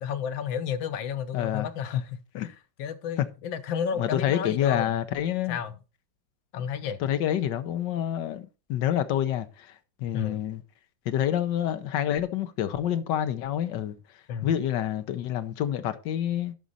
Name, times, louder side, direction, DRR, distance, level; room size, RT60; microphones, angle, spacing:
voice 1, 0.0-5.0 5.5-5.8 6.5-7.0 10.1-10.5 14.3-14.5, left 7 dB, 90° left, 1.6 m, -32 dB
voice 2, 1.3-2.0 2.3-2.5 3.2-3.3 4.0-5.6 7.0-9.7 10.0-10.6 11.1-14.0 14.4-16.5, left 10 dB, 75° left, 1.4 m, -28 dB
11.5 x 5.2 x 4.1 m
omnidirectional pair, 2.0 m